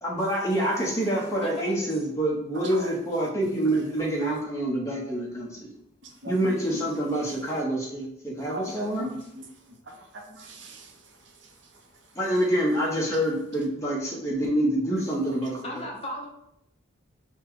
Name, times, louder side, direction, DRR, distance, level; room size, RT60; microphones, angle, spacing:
voice 1, 0.0-5.7 6.3-9.1 12.2-15.8, right 1 dB, 15° left, -4 dB, 0.9 m, -27 dB
voice 2, 1.4-1.9 9.2-9.3 15.6-16.3, left 1 dB, 30° left, 0 dB, 0.6 m, -36 dB
voice 3, 2.5-2.9 3.8-3.9 6.0-6.8 8.4-9.4 9.9-10.9 11.4-11.5 15.0-15.4, equal, 65° right, 2 dB, 0.7 m, -40 dB
4.1 x 2.3 x 4.6 m, 0.77 s
head